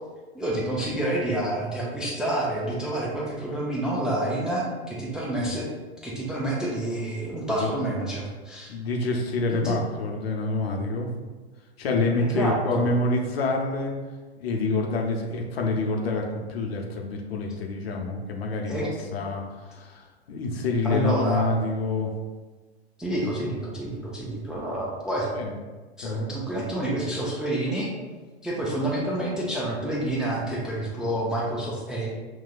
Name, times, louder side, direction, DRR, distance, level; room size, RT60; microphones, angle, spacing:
voice 1, 0.3-5.7 6.0-8.7 9.6-9.8 12.2-12.9 18.7-18.9 20.8-21.4 23.0-25.3 26.0-27.9 28.4-32.1, right 1 dB, ahead, -5 dB, 0.4 m, -28 dB
voice 2, 8.7-11.1 11.8-13.9 14.4-22.1 25.3-25.6 26.0-26.3, left 2 dB, 65° left, 1 dB, 0.8 m, -27 dB
5.8 x 2.3 x 2.3 m, 1.3 s
figure-of-eight pair, 100°, 33 cm